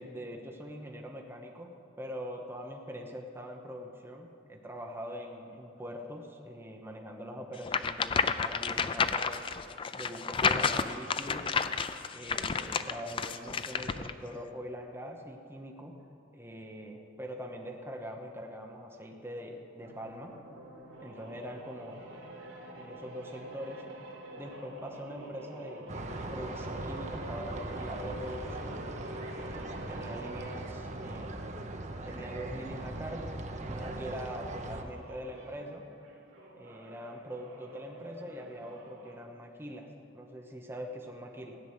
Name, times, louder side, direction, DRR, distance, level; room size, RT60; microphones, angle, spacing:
voice 1, 0.0-9.5 9.9-11.5 12.1-16.0 16.3-20.3 21.0-22.0 22.7-23.8 24.4-28.8 29.4-31.4 32.1-35.9 36.5-41.6, equal, 10° right, 1 dB, 1.0 m, -43 dB
sound 1, 7.6-14.1, left 5 dB, 25° left, 0.4 m, -30 dB
sound 2, 19.8-31.5 32.1-39.3, right 1 dB, 85° right, 2.3 m, -48 dB
sound 3, 25.9-34.8, right 2 dB, 35° right, 0.8 m, -40 dB
16.0 x 6.0 x 9.7 m, 2.5 s
head